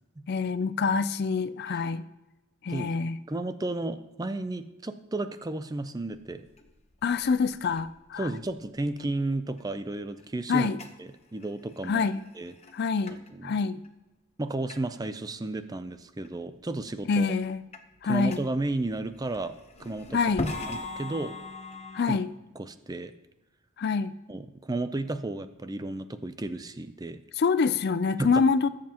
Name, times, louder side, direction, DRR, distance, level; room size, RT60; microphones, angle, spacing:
voice 1, 0.3-2.0 2.6-3.2 7.0-8.3 10.5-10.8 11.9-12.2 12.7-13.8 17.1-17.6 18.0-18.4 20.1-20.5 21.9-22.3 23.8-24.1 27.4-28.7, left 5 dB, 50° left, 14 dB, 0.4 m, -26 dB
voice 2, 3.3-6.5 8.2-10.7 11.0-12.0 12.3-12.5 13.3-13.6 14.4-17.3 18.1-19.5 19.8-20.2 20.6-21.4 22.0-22.2 22.6-23.1 24.3-27.2 28.2-28.4, right 2 dB, 15° right, 11 dB, 0.4 m, -33 dB
sound 1, 6.1-9.6 10.1-10.3 10.8-11.1 11.3-13.3 13.8-13.9 14.7-14.8 15.0-15.1 15.7-15.8 16.2-16.9 17.2-22.1, left 2 dB, 30° left, 0.9 m, -41 dB
21.0 x 7.5 x 2.9 m, 1.1 s
head